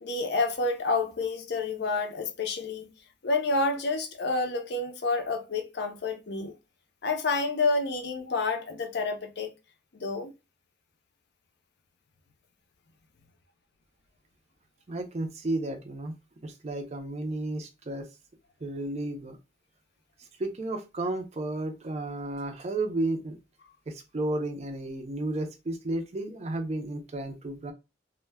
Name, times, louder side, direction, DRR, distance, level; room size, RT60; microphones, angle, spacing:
voice 1, 0.0-2.9 3.2-6.5 7.0-9.5 9.9-10.3, left 3 dB, 55° left, 0.5 m, -29 dB
voice 2, 14.9-16.1 16.4-18.1 18.6-19.4 20.4-23.4 23.9-27.7, right 2 dB, 35° right, 0.4 m, -32 dB
2.1 x 2.1 x 3.2 m
head